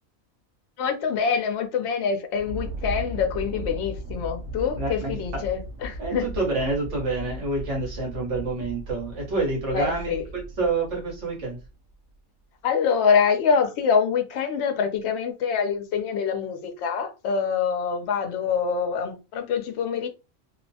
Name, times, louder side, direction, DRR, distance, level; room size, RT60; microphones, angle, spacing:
voice 1, 0.8-6.4 9.7-10.2 12.6-20.1, left 6 dB, 65° left, 0.8 m, -25 dB
sound 1, 2.3-11.9, right 1 dB, 90° right, 1.1 m, -37 dB
voice 2, 4.8-5.4 6.0-11.6, right 3 dB, 65° right, 1.4 m, -28 dB
2.9 x 2.1 x 2.7 m
omnidirectional pair, 1.3 m